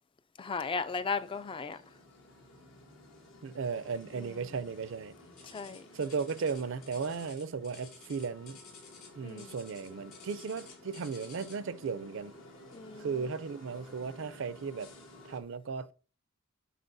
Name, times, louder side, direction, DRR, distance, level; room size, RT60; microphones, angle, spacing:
voice 1, 0.4-1.8 4.1-4.5 5.4-5.9 9.2-9.6 12.7-13.3, left 4 dB, 25° left, 0.4 m, -36 dB
sound 1, 0.8-15.4, left 1 dB, 70° left, 1.3 m, -54 dB
voice 2, 3.4-5.1 5.9-8.6 9.1-12.3 13.0-14.9 15.2-15.9, right 5 dB, 65° right, 0.5 m, -36 dB
sound 2, 5.4-11.7 12.7-13.0 13.5-13.6 14.3-14.4, left 5 dB, 50° left, 3.9 m, -54 dB
10.0 x 4.2 x 2.6 m
head